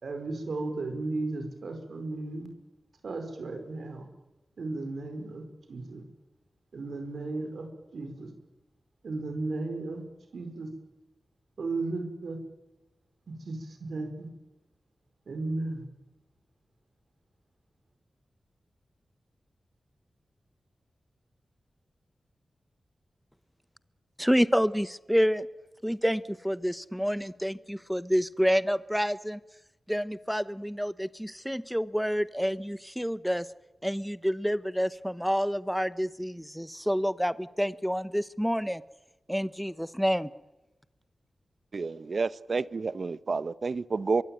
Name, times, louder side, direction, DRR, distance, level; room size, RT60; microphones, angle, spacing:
voice 1, 0.0-2.5 3.0-4.1 4.6-6.0 6.7-7.7 7.9-8.3 9.0-10.0 10.3-10.7 11.6-12.4 13.3-14.3 15.3-15.8, right 2 dB, 75° right, 6 dB, 5.0 m, -35 dB
voice 2, 24.2-25.5 25.8-29.4 29.9-33.5 33.8-38.8 39.3-40.3, equal, ahead, 15 dB, 0.9 m, -28 dB
voice 3, 41.7-44.2, right 4 dB, 60° right, 16 dB, 0.8 m, -30 dB
24.0 x 23.0 x 9.1 m, 0.99 s
wide cardioid pair, 70°, 0 cm